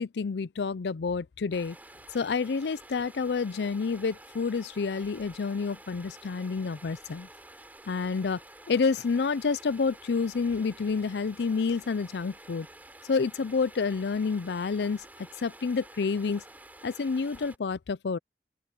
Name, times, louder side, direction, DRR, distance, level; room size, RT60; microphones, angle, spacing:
voice 1, 0.0-1.8 2.1-7.3 7.9-8.4 8.7-12.7 13.1-15.0 15.4-16.4 16.8-18.2, left 5 dB, 75° left, 0.5 m, -29 dB
Stream, 1.5-17.6, right 1 dB, 10° right, 7.6 m, -50 dB
open air
head